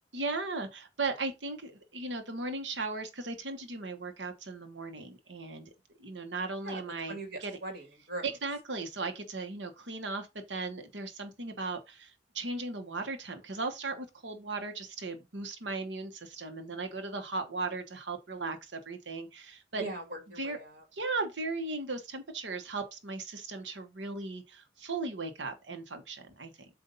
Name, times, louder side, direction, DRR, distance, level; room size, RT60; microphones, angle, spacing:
voice 1, 0.1-5.7 6.0-7.6 8.2-19.8 20.4-20.6 20.9-26.7, right 3 dB, 85° right, 1.2 m, -37 dB
voice 2, 7.1-8.3 19.7-20.8, right 2 dB, 60° right, 2.0 m, -41 dB
7.9 x 2.7 x 5.4 m
head